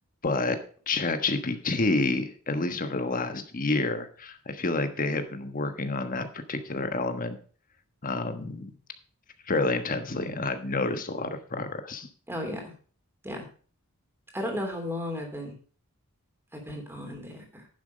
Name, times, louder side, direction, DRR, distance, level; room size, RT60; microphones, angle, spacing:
voice 1, 0.2-0.6 0.9-7.4 8.0-8.7 9.5-12.1, left 3 dB, 40° left, 8 dB, 1.3 m, -29 dB
voice 2, 12.3-12.7 13.2-13.4 14.3-15.5 16.5-17.7, left 1 dB, 10° right, 2 dB, 3.0 m, -34 dB
10.5 x 7.2 x 5.1 m, 0.41 s
head